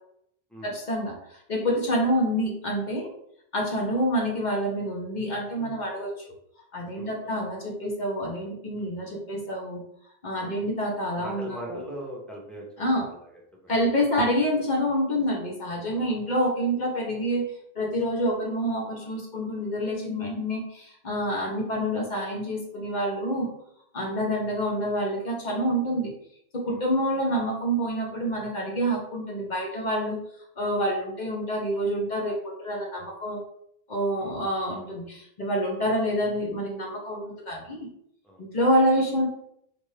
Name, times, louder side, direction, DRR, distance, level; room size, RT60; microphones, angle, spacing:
voice 1, 0.6-3.1 3.5-6.2 6.7-9.8 10.2-11.8 12.8-13.1 13.7-17.4 17.7-23.5 23.9-26.1 26.5-30.2 30.6-33.4 33.9-37.9 38.4-39.3, equal, 45° left, -2 dB, 1.0 m, -27 dB
voice 2, 6.9-7.4 10.4-10.6 11.1-12.7 13.0-13.7 15.9-16.2 21.3-21.5 24.0-24.2 26.7-26.8 34.1-34.4 38.2-38.4, equal, ahead, -3 dB, 0.7 m, -41 dB
3.8 x 2.6 x 3.2 m, 0.72 s
omnidirectional pair, 1.1 m